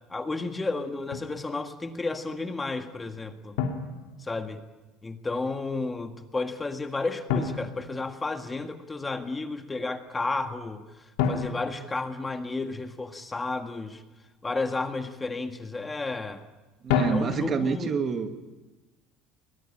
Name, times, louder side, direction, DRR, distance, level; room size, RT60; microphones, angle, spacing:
voice 1, 0.1-3.6 4.2-4.6 5.0-10.8 11.3-14.0 14.4-16.4 17.1-17.9, left 3 dB, 15° left, 7 dB, 1.7 m, -32 dB
Drum, 1.1-1.4 3.6-4.7 7.3-8.7 11.2-12.9 16.9-17.8, left 6 dB, 80° left, 2.9 m, -31 dB
voice 2, 16.8-18.5, right 5 dB, 35° right, 7 dB, 1.9 m, -28 dB
21.5 x 21.5 x 8.8 m, 1.1 s
supercardioid pair, 115°, 0 cm